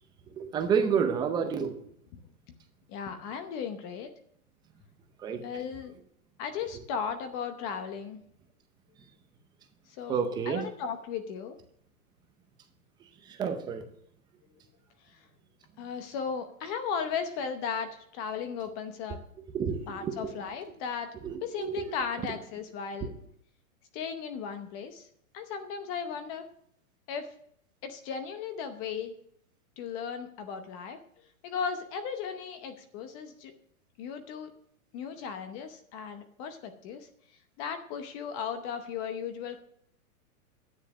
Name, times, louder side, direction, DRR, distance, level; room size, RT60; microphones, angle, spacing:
voice 1, 0.4-1.7 5.2-5.4 10.1-10.6 13.4-13.8 19.5-20.3 21.2-21.3 21.6-21.7, right 7 dB, 10° right, 6 dB, 0.6 m, -29 dB
voice 2, 2.9-4.1 5.4-5.9 6.4-8.2 10.0-11.6 15.1-15.3 15.8-19.2 19.9-21.1 21.4-23.1 23.9-25.1 25.3-26.5 27.1-27.3 27.8-29.1 29.8-31.0 31.4-33.5 34.0-34.5 34.9-37.1 37.6-39.6, left 6 dB, 25° left, 8 dB, 0.8 m, -36 dB
10.0 x 7.2 x 6.0 m, 0.67 s
hypercardioid pair, 150°, 43 cm